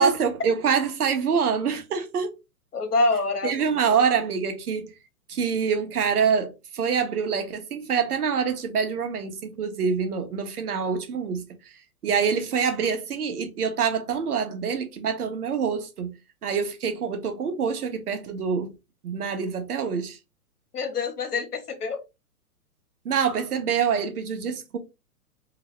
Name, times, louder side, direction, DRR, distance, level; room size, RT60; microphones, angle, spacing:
voice 1, 0.0-2.3 3.4-4.9 5.3-11.7 12.0-16.1 16.4-18.7 19.0-20.2 23.0-24.8, right 6 dB, 80° right, 1.0 m, -25 dB
voice 2, 2.7-4.0 20.7-22.0, left 3 dB, 90° left, 1.3 m, -26 dB
2.9 x 2.9 x 3.1 m
hypercardioid pair, 125°, 45 cm